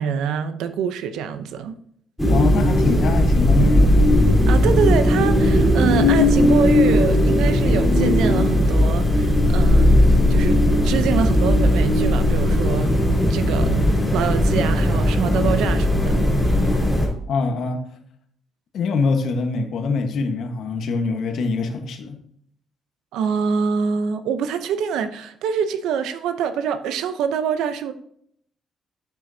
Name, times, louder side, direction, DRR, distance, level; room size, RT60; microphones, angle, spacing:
voice 1, 0.0-1.7 4.5-12.9 13.3-16.2 23.1-27.9, right 7 dB, 90° right, 11 dB, 0.7 m, -25 dB
sound 1, 2.2-17.1, left 1 dB, ahead, 3.6 m, -17 dB
voice 2, 2.3-4.1 17.3-17.8 18.7-22.2, left 4 dB, 70° left, 6 dB, 1.3 m, -23 dB
9.2 x 7.7 x 2.8 m, 0.66 s
cardioid pair, 90°, 0 cm